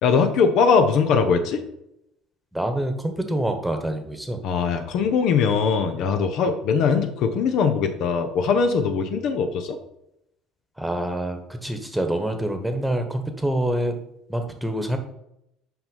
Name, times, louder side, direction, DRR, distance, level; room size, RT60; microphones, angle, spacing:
voice 1, 0.0-1.6 4.4-9.8, left 5 dB, 55° left, 7 dB, 0.8 m, -21 dB
voice 2, 2.5-4.4 10.8-14.0 14.3-15.0, right 1 dB, 5° right, 6 dB, 1.3 m, -26 dB
5.8 x 5.5 x 5.5 m, 0.81 s
figure-of-eight pair, 60°, 0 cm